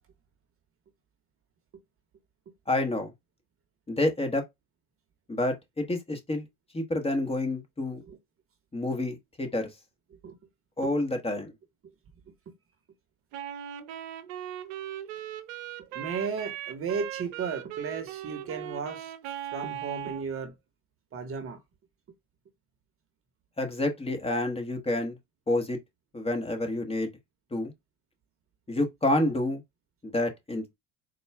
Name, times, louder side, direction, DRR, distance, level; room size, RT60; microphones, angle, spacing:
voice 1, 2.7-3.1 3.9-4.4 5.3-6.4 6.7-8.0 8.7-9.7 10.8-11.5 23.6-25.2 25.5-25.8 26.1-27.1 27.5-27.7 28.7-29.6 30.0-30.6, left 1 dB, 15° left, 1.2 m, -28 dB
Wind instrument woodwind instrument, 13.3-20.3, right 11 dB, 80° right, 0.7 m, -39 dB
voice 2, 15.9-20.5 21.1-21.6, right 5 dB, 35° right, 1.0 m, -35 dB
4.2 x 2.3 x 3.4 m
supercardioid pair, 85°, 37 cm